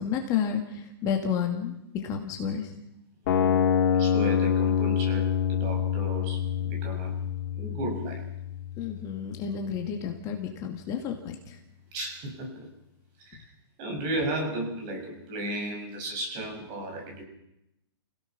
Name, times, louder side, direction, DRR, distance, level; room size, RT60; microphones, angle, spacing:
voice 1, 0.0-2.7 8.8-11.6, left 7 dB, 25° left, 3 dB, 2.2 m, -31 dB
voice 2, 3.2-7.1 7.6-8.3 11.9-12.7 13.4-13.5 13.8-17.2, right 1 dB, 30° right, 2 dB, 7.1 m, -34 dB
sound 1, 3.3-9.3, left 8 dB, 45° left, 2.9 m, -26 dB
29.0 x 17.0 x 6.1 m, 0.85 s
hypercardioid pair, 150°, 14 cm